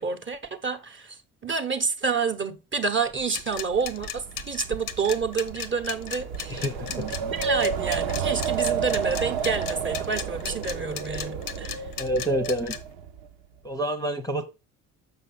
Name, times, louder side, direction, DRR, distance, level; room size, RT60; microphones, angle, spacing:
voice 1, 0.0-11.9, right 5 dB, 25° right, 1.0 m, -29 dB
Wind, 3.2-13.3, right 7 dB, 70° right, 0.9 m, -31 dB
sound 1, 3.3-12.8, left 9 dB, 80° left, 0.8 m, -35 dB
voice 2, 6.5-7.0 12.0-12.7 13.6-14.5, right 1 dB, 10° left, 0.8 m, -27 dB
6.8 x 5.7 x 3.7 m
figure-of-eight pair, 50°, 45 cm